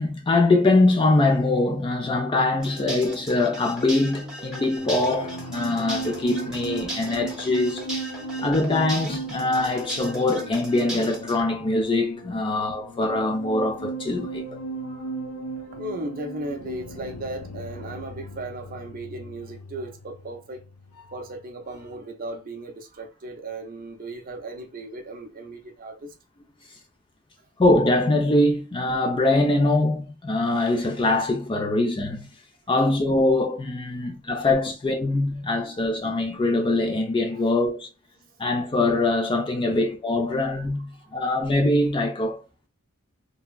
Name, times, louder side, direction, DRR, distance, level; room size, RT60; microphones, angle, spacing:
voice 1, 0.0-7.9 8.4-14.4 27.6-32.3 32.7-37.9 38.4-42.4, left 2 dB, 20° left, 0.4 m, -23 dB
sound 1, 2.6-11.4, right 1 dB, 5° right, 0.8 m, -37 dB
sound 2, 4.8-21.4 21.7-22.0, right 2 dB, 85° left, 0.6 m, -37 dB
voice 2, 14.8-15.1 15.4-20.6 21.1-26.1 35.6-35.8 37.3-37.5 38.2-38.4 39.7-39.8 40.9-41.2, right 2 dB, 40° right, 0.6 m, -37 dB
3.3 x 2.0 x 2.3 m
head